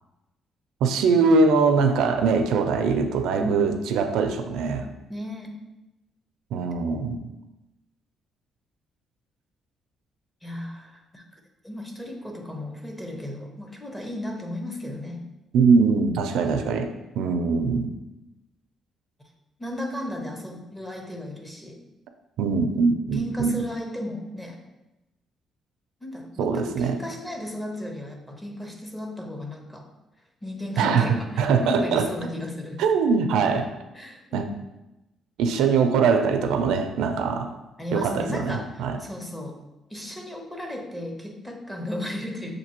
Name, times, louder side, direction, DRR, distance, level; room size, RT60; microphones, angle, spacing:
voice 1, 0.8-4.9 6.5-7.2 15.5-17.9 22.4-23.5 26.4-27.0 30.8-32.1 32.8-33.7 34.3-34.5 35.4-37.6 37.9-39.0, right 5 dB, 85° right, 7 dB, 0.4 m, -22 dB
voice 2, 3.4-3.7 5.1-5.5 10.4-11.2 11.6-15.2 19.6-21.8 22.7-24.6 26.0-29.8 30.4-32.8 33.9-34.4 37.8-39.6 39.9-42.5, left 1 dB, 10° left, 2 dB, 0.6 m, -34 dB
6.6 x 2.6 x 2.9 m, 0.97 s
cardioid pair, 130°, 0 cm